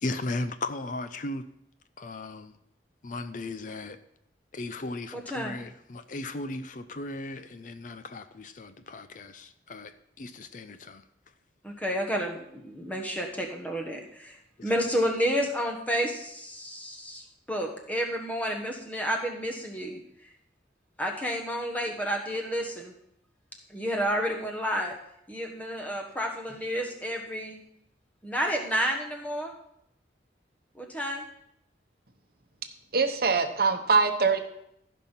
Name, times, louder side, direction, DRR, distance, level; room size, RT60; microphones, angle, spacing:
voice 1, 0.0-1.4 2.0-2.5 3.0-4.0 4.5-11.0 14.6-14.7, left 2 dB, 45° left, 0.5 m, -36 dB
voice 2, 5.1-5.6 11.6-20.0 21.0-22.9 23.7-24.9 25.3-27.6 28.2-29.5 30.7-31.2, equal, 10° left, 1.4 m, -30 dB
voice 3, 32.9-34.4, right 4 dB, 55° right, 1.0 m, -23 dB
14.5 x 5.5 x 5.7 m
head